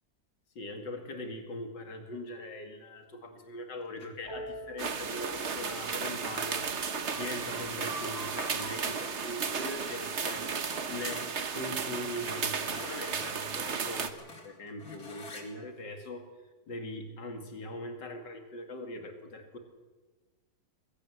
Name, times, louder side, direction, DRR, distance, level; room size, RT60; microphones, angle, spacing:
voice 1, 0.5-6.7 7.1-10.5 10.9-16.3 16.7-19.6, left 1 dB, 70° left, 5 dB, 3.0 m, -41 dB
sound 1, 4.0-4.3 7.4-7.6 7.8-11.4 11.8-11.9 12.2-15.5, left 3 dB, 50° left, 3.2 m, -50 dB
sound 2, 4.2-11.8, right 1 dB, 10° right, 5.7 m, -47 dB
sound 3, 4.8-14.1, right 5 dB, 45° right, 1.3 m, -34 dB
21.5 x 16.0 x 7.9 m, 1.3 s
omnidirectional pair, 2.0 m